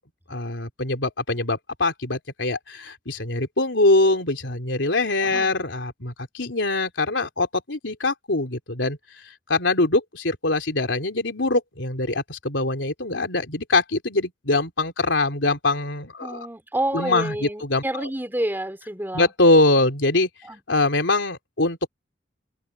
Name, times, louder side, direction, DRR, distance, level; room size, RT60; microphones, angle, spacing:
voice 1, 0.3-9.0 9.5-16.5 16.9-18.1 19.1-20.3 20.7-21.9, left 2 dB, 80° left, 3.7 m, -23 dB
voice 2, 5.2-5.5 16.2-19.3 20.4-20.6, right 1 dB, 10° right, 3.5 m, -29 dB
head